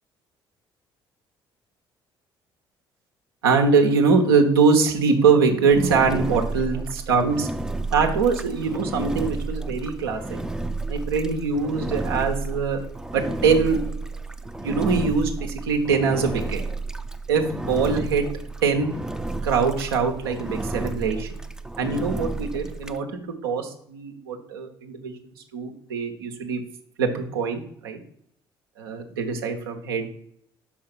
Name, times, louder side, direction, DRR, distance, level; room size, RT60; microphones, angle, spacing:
voice 1, 3.4-7.5 7.9-10.4 10.9-12.8 13.1-14.0 14.6-16.6 17.3-18.3 18.6-18.9 19.4-21.3 21.8-25.1 25.5-26.6 27.0-28.0 28.8-30.1, right 5 dB, 75° right, 3 dB, 1.0 m, -23 dB
Engine, 5.7-23.0, right 2 dB, 5° right, 0.6 m, -31 dB
5.6 x 5.0 x 5.3 m, 0.66 s
figure-of-eight pair, 50°, 12 cm